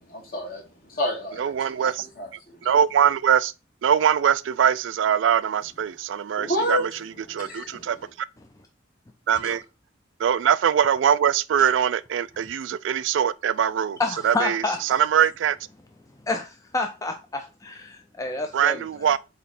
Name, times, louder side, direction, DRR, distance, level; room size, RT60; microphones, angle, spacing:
voice 1, 0.1-0.6 0.9-2.6 6.4-7.0 7.3-8.1, left 1 dB, 50° left, 2.2 m, -30 dB
voice 2, 1.4-2.0 2.6-3.5 3.8-6.8 7.3-8.0 9.3-9.6 10.2-14.0 14.2-14.6 14.9-15.6 18.5-19.2, right 8 dB, 75° right, 0.3 m, -22 dB
voice 3, 14.0-15.0 16.3-19.1, left 3 dB, 20° left, 0.5 m, -29 dB
8.2 x 3.1 x 4.2 m
head